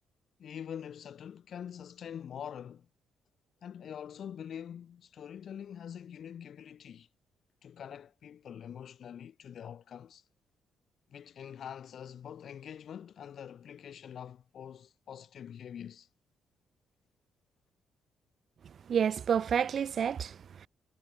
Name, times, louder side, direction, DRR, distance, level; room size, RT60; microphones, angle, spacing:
voice 1, 0.4-2.9 3.6-7.1 7.6-10.2 11.1-16.1, left 9 dB, 60° left, 3.4 m, -45 dB
voice 2, 18.9-20.7, right 8 dB, 55° right, 0.8 m, -29 dB
cardioid pair, 90°, 0 cm